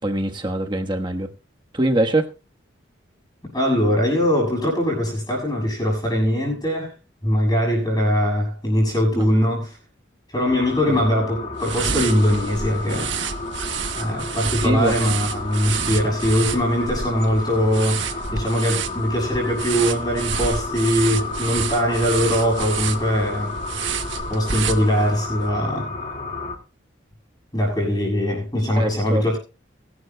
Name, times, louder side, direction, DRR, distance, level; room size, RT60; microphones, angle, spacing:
voice 1, 0.0-1.3 1.7-2.3 9.1-9.3 10.9-11.1 14.6-15.0 28.8-29.2, right 1 dB, 25° right, 1.3 m, -23 dB
voice 2, 3.4-6.9 7.2-9.8 10.3-13.1 13.9-18.1 18.3-23.6 24.3-25.9 27.5-29.4, equal, 20° left, 7.0 m, -21 dB
sound 1, 10.5-26.6, left 3 dB, 40° left, 2.2 m, -32 dB
sound 2, 11.6-25.3, right 7 dB, 75° right, 1.2 m, -30 dB
23.0 x 11.5 x 2.3 m
head